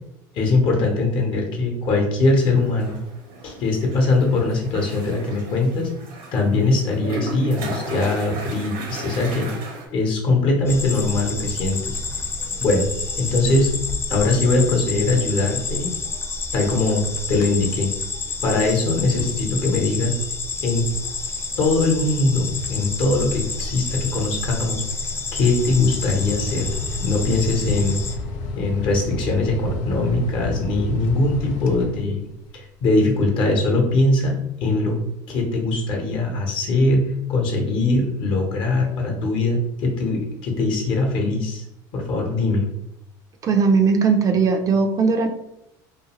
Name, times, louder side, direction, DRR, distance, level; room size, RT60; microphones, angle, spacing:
voice 1, 0.3-3.0 3.4-5.9 6.3-9.5 9.9-12.0 12.6-12.9 13.2-13.7 14.1-15.9 16.5-17.9 18.4-20.2 20.6-20.9 21.6-24.8 25.3-26.7 27.0-28.0 28.5-32.2 32.5-34.3 34.6-35.0 35.3-41.6 41.9-42.7, left 2 dB, 55° left, 1 dB, 0.9 m, -21 dB
sound 1, 2.3-9.9, right 2 dB, 80° right, 0.8 m, -36 dB
sound 2, 10.7-28.1, left 3 dB, 25° left, 0.5 m, -29 dB
sound 3, 16.6-17.1 17.3-17.7 18.1-32.4, left 2 dB, 75° left, 0.5 m, -33 dB
voice 2, 43.4-45.3, right 5 dB, 35° right, 4 dB, 0.4 m, -18 dB
2.5 x 2.3 x 2.9 m, 0.85 s
supercardioid pair, 100°, 10 cm